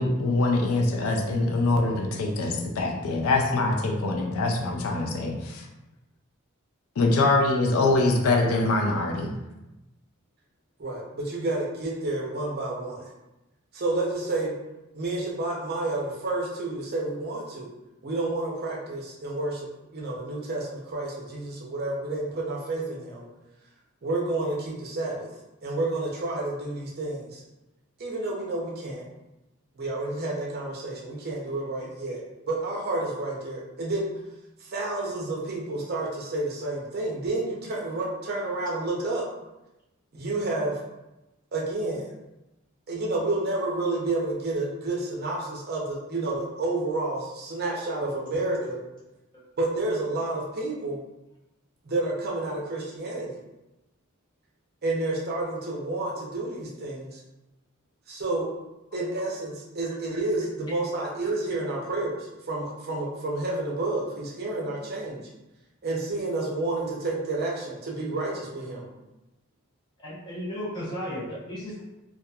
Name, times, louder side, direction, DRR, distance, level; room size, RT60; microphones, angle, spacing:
voice 1, 0.0-5.7 7.0-9.3, left 2 dB, 80° left, 2 dB, 0.4 m, -24 dB
voice 2, 10.8-13.0 13.7-14.6 14.9-17.7 18.0-23.3 24.0-25.3 25.6-27.4 28.0-29.0 29.8-34.0 34.6-39.2 40.1-40.8 41.5-42.1 42.9-48.8 49.6-51.0 51.8-53.4 54.8-57.2 58.1-58.5 58.9-65.2 65.8-68.9, right 2 dB, 50° right, -3 dB, 0.6 m, -30 dB
voice 3, 70.0-71.8, equal, 20° left, -7 dB, 0.8 m, -35 dB
2.8 x 2.2 x 2.3 m, 0.98 s
head